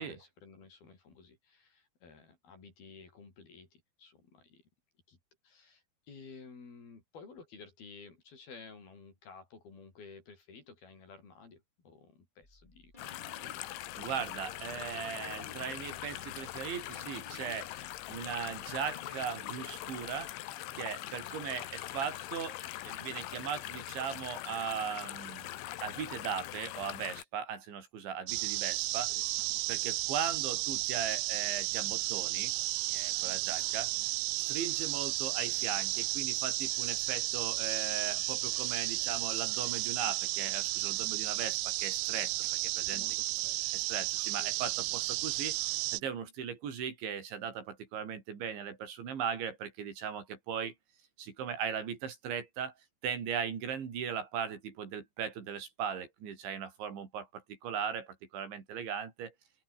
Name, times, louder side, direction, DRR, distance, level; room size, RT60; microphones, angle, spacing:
voice 1, 0.0-4.6 5.1-5.2 5.4-13.6 29.1-29.7 33.3-33.6 42.9-43.9 44.4-44.5, left 4 dB, 50° left, 7.5 m, -54 dB
sound 1, 12.4-20.3, left 1 dB, 10° left, 7.9 m, -59 dB
sound 2, 13.0-27.2, left 15 dB, 75° left, 3.7 m, -42 dB
voice 2, 14.0-20.3 20.8-22.6 22.8-25.5 25.8-29.1 29.7-32.5 32.9-33.9 34.4-42.3 42.8-43.0 43.7-50.7 51.2-52.7 53.0-59.3, right 7 dB, 65° right, 6.5 m, -38 dB
sound 3, 28.3-46.0, right 25 dB, 85° right, 2.9 m, -33 dB
open air
omnidirectional pair, 5.6 m